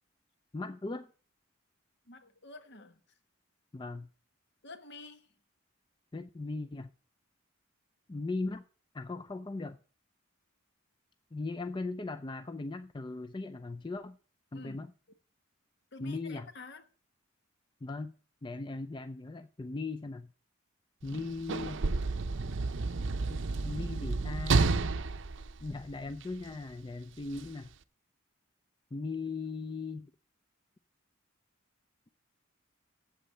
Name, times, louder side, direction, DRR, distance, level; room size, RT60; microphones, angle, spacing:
voice 1, 0.5-1.1 3.7-4.1 6.1-6.9 8.1-8.6 8.9-9.8 11.3-14.2 14.5-14.9 16.0-16.5 17.8-18.1 18.4-20.3 21.0-21.8 23.3-24.8 25.6-27.7 28.9-30.1, left 3 dB, 20° left, 0.4 m, -38 dB
voice 2, 2.1-3.0 4.6-5.3 14.5-14.9 15.9-16.8, left 3 dB, 55° left, 1.3 m, -49 dB
Sliding door / Slam, 21.0-26.4 27.3-27.5, right 3 dB, 60° right, 0.6 m, -31 dB
8.5 x 7.7 x 7.6 m
head